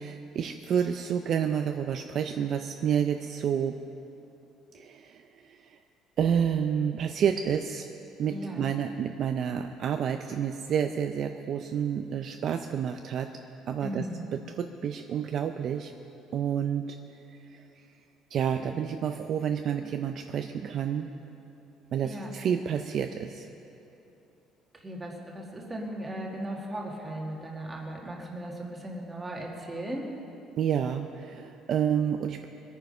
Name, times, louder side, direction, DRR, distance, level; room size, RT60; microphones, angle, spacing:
voice 1, 0.0-3.8 4.7-5.8 6.2-7.9 8.2-13.3 13.7-14.1 14.6-15.9 16.3-17.0 17.3-17.6 18.3-21.1 21.9-23.5 30.6-32.5, right 8 dB, 40° right, 6 dB, 0.5 m, -29 dB
voice 2, 8.3-8.7 13.8-14.2 22.0-22.3 24.8-30.1, right 1 dB, 10° right, -1 dB, 1.8 m, -37 dB
22.5 x 9.2 x 5.4 m, 2.9 s
cardioid pair, 170°, 0 cm